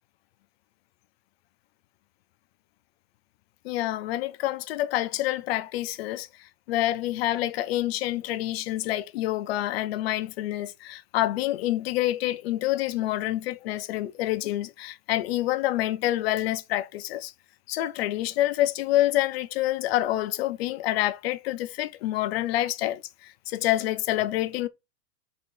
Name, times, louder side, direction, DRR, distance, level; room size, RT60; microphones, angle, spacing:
voice 1, 3.6-6.3 6.7-17.3 17.7-24.7, left 15 dB, 40° left, 0.6 m, -27 dB
4.6 x 4.1 x 5.2 m
hypercardioid pair, 140°, 48 cm